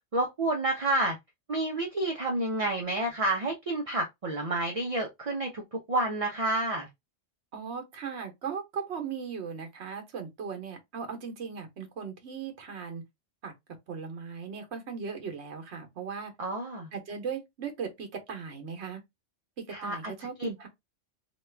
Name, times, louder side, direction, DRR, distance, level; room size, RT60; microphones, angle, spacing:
voice 1, 0.1-1.2 1.5-6.9 16.4-16.9 19.7-20.1 20.4-20.5, right 2 dB, 40° right, 0.5 m, -29 dB
voice 2, 7.5-13.0 13.4-13.5 13.9-16.3 16.9-19.0 19.8-20.7, right 6 dB, 70° right, 1.1 m, -38 dB
2.9 x 2.3 x 3.2 m
omnidirectional pair, 1.2 m